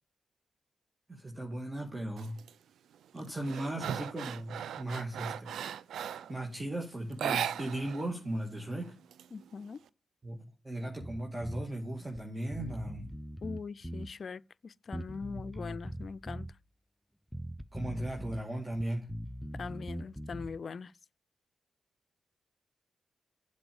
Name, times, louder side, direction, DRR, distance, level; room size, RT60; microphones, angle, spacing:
voice 1, 1.1-2.4 3.1-5.5 6.3-8.9 10.2-10.4 10.6-13.1 17.7-19.1, right 1 dB, 25° right, 2.0 m, -37 dB
sound 1, 2.2-2.5 2.9-6.4 7.1-8.1 8.3-8.4 8.8-9.8, right 9 dB, 85° right, 0.4 m, -37 dB
voice 2, 9.3-9.8 13.4-16.5 19.5-20.9, left 5 dB, 60° left, 0.4 m, -41 dB
Bass guitar, 11.0-11.7 12.2-12.3 12.5-14.1 14.9-16.5 17.3-18.4 18.7-20.6, equal, 5° left, 0.6 m, -41 dB
7.8 x 5.1 x 7.0 m
supercardioid pair, 50°, 0 cm